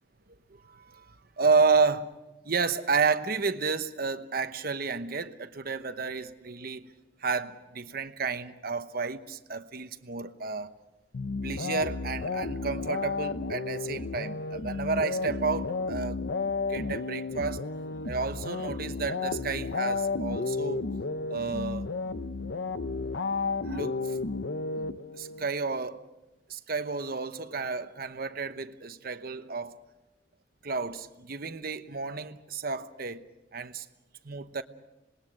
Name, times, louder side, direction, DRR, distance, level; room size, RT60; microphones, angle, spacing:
voice 1, 0.6-2.1 2.4-6.9 7.2-10.7 11.4-16.2 16.7-17.6 18.0-20.9 21.3-21.9 23.6-24.2 25.1-26.0 26.5-29.8 30.6-33.3 33.5-33.9 34.2-34.6, right 4 dB, 55° right, 1.0 m, -31 dB
sound 1, 11.1-25.5, left 4 dB, 65° left, 0.7 m, -32 dB
26.5 x 20.5 x 6.5 m
head